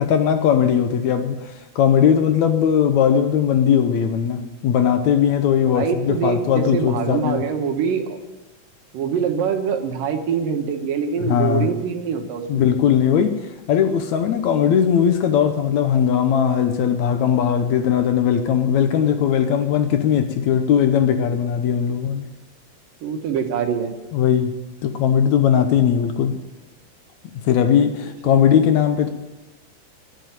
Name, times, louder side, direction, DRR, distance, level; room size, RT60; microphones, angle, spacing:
voice 1, 0.0-7.5 11.2-11.7 12.5-22.3 24.1-24.5 24.8-26.4 27.4-29.1, left 8 dB, 70° left, 2.0 m, -19 dB
voice 2, 5.6-8.2 8.9-12.7 23.0-24.0 28.2-28.4, right 7 dB, 90° right, 3.1 m, -24 dB
11.5 x 10.5 x 9.1 m
omnidirectional pair, 3.8 m